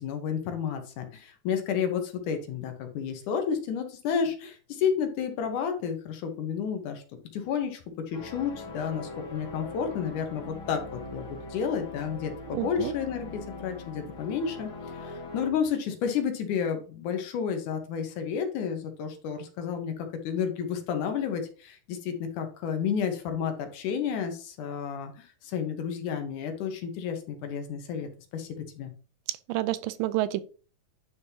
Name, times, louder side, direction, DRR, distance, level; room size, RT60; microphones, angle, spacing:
voice 1, 0.0-7.0 7.3-7.8 8.1-28.9, left 7 dB, 70° left, 2.4 m, -31 dB
sound 1, 8.1-15.5, left 3 dB, 45° left, 2.0 m, -41 dB
voice 2, 12.5-12.9 29.3-30.4, right 15 dB, 85° right, 2.3 m, -29 dB
9.9 x 5.2 x 2.8 m
omnidirectional pair, 3.8 m